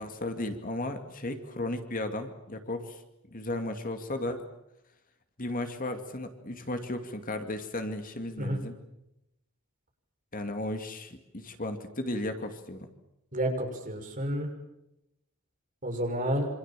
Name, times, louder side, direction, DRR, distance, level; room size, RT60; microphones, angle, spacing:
voice 1, 0.0-3.0 3.3-4.4 5.4-8.8 10.3-12.9, left 1 dB, 40° left, 7 dB, 2.4 m, -35 dB
voice 2, 13.3-14.5 15.8-16.5, right 1 dB, 35° right, 3 dB, 6.4 m, -30 dB
27.0 x 26.5 x 7.6 m, 0.87 s
head